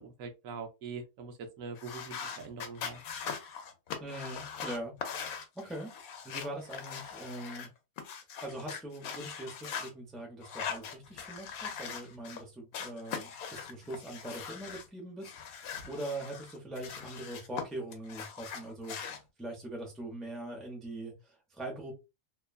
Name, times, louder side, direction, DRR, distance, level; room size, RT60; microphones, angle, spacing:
voice 1, 0.0-3.0, right 4 dB, 75° right, 1.0 m, -43 dB
sound 1, 1.8-7.7 8.0-9.9 10.4-12.4 12.7-14.9 15.2-17.6 17.9-19.2, left 7 dB, 85° left, 1.1 m, -41 dB
voice 2, 4.0-4.9 5.5-5.9 6.2-7.7 8.4-21.9, right 1 dB, ahead, 0.6 m, -42 dB
2.9 x 2.3 x 2.3 m
omnidirectional pair, 1.5 m